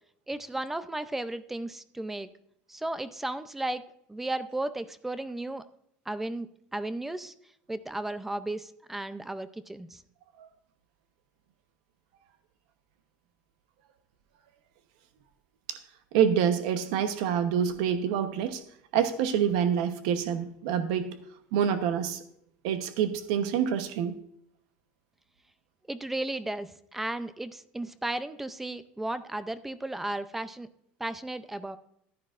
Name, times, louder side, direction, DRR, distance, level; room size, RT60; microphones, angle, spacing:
voice 1, 0.3-2.3 2.7-3.8 4.1-5.6 6.1-7.3 7.7-10.0 25.9-30.7 31.0-31.8, right 2 dB, 5° right, 0.4 m, -34 dB
voice 2, 16.1-18.6 18.9-21.1 21.5-22.2 22.6-24.2, right 8 dB, 80° right, 0.9 m, -27 dB
14.5 x 10.5 x 2.5 m
cardioid pair, 155°, 4 cm